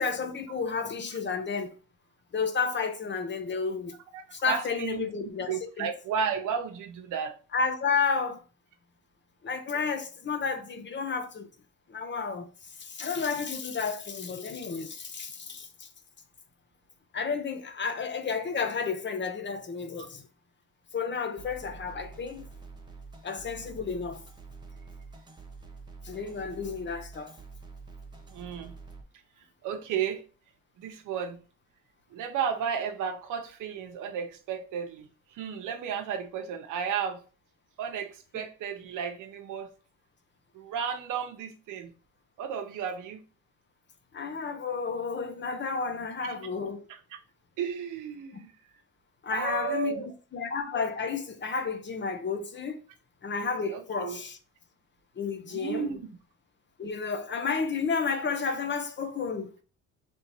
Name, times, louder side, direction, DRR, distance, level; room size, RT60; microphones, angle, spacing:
voice 1, 0.0-1.7 2.3-3.9 4.3-5.9 7.5-8.4 9.4-11.5 11.9-15.9 17.1-20.3 20.9-22.5 23.2-24.2 26.0-27.3 44.1-46.9 49.2-50.0 50.3-52.8 53.2-54.4 55.2-55.9 56.8-59.5, left 5 dB, 40° left, 0.8 m, -31 dB
voice 2, 4.1-5.1 5.5-7.3 28.3-28.7 29.6-30.2 30.8-31.4 32.1-37.2 37.8-39.7 40.5-41.9 42.4-43.2 46.2-46.3 47.6-48.5 49.3-50.1 53.7-54.2 55.5-56.0, right 7 dB, 85° right, 0.9 m, -33 dB
sound 1, 21.4-29.0, right 4 dB, 15° right, 0.9 m, -47 dB
3.4 x 2.8 x 4.6 m
cardioid pair, 90°, 30 cm